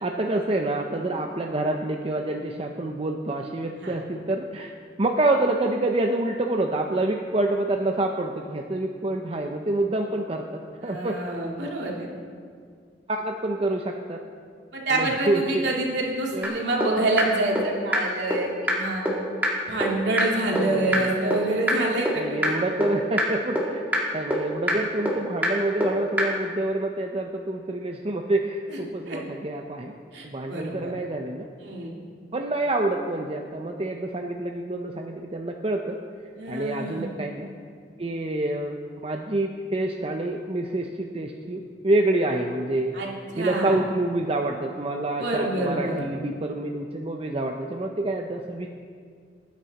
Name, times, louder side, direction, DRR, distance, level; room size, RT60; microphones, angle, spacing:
voice 1, 0.0-4.7 5.0-11.2 13.1-14.2 14.9-15.6 16.3-16.6 20.5-21.1 22.2-23.8 24.1-30.0 30.2-31.5 32.3-36.0 36.5-37.5 38.0-38.8 39.0-42.9 43.4-48.7, right 2 dB, 30° right, 2 dB, 0.6 m, -27 dB
voice 2, 10.8-12.1 14.7-19.0 19.6-22.6 28.7-28.8 29.1-29.2 30.1-30.9 31.6-31.9 36.3-37.1 42.9-43.8 45.2-46.0, right 2 dB, 70° right, -2 dB, 2.6 m, -27 dB
sound 1, 16.4-16.5 16.8-16.9 17.2-17.3 17.6-17.7 17.9-18.0 18.3-18.4 18.7-18.8 19.1-19.2 19.4-19.5 19.8-19.9 20.2-20.3 20.6-20.7 20.9-21.0 21.3-21.4 21.7-21.8 22.1-22.2 22.4-22.5 22.8-22.9 23.2-23.3 23.6-23.7 23.9-24.0 24.3-24.4 24.7-24.8 25.1-25.2 25.4-25.5 25.8-25.9 26.2-26.3, equal, 10° right, 1.9 m, -22 dB
19.5 x 9.5 x 4.2 m, 2.1 s
head